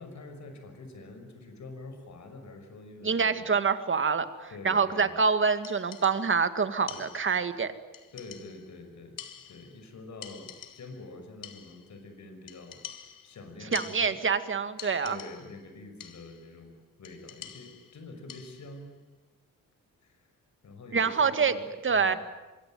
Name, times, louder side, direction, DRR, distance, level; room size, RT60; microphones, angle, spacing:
voice 1, 0.0-3.5 4.5-5.1 6.9-7.1 8.1-9.2 9.5-14.2 15.0-18.9 20.0-20.3 20.6-22.2, left 2 dB, 60° left, 6 dB, 6.1 m, -46 dB
voice 2, 3.0-7.7 13.7-15.2 20.9-21.5 21.8-22.2, right 5 dB, 40° right, 10 dB, 1.9 m, -26 dB
sound 1, 5.6-6.4 6.9-7.6 7.9-8.8 9.2-9.9 10.2-11.1 11.4-12.0 12.5-14.4 14.8-15.6 16.0-16.5 17.0-18.8, left 9 dB, 90° left, 2.3 m, -47 dB
25.5 x 24.0 x 9.3 m, 1.2 s
cardioid pair, 115°, 32 cm